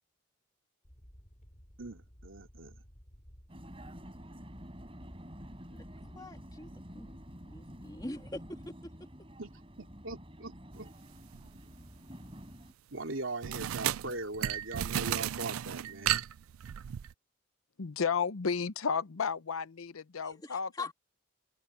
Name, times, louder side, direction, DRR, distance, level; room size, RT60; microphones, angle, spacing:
sound 1, 0.8-8.6, equal, 35° left, 7.0 m, -55 dB
voice 1, 1.8-2.8 9.4-9.5 9.8-10.9 12.9-16.2, right 2 dB, 70° right, 3.0 m, -41 dB
Vehicle, 3.5-12.7, equal, 25° right, 6.5 m, -49 dB
voice 2, 6.1-7.2 7.5-8.9 20.2-20.9, left 2 dB, 20° left, 2.4 m, -43 dB
sound 2, 11.3-11.6 13.4-17.1, right 11 dB, 90° right, 0.4 m, -34 dB
voice 3, 17.8-20.7, left 6 dB, 85° left, 0.7 m, -32 dB
open air
head